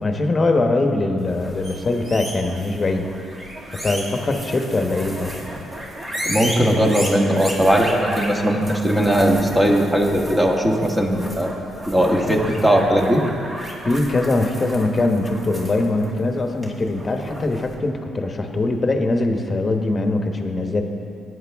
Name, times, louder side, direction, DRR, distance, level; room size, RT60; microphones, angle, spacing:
voice 1, 0.0-3.1 3.7-5.3 13.8-20.8, left 2 dB, 30° left, 4 dB, 1.2 m, -22 dB
sound 1, 1.2-17.7, equal, 25° right, 2.2 m, -33 dB
voice 2, 6.2-11.5 11.9-13.2, equal, 10° right, 1 dB, 1.6 m, -18 dB
17.5 x 9.4 x 3.6 m, 2.5 s
cardioid pair, 90°, 0 cm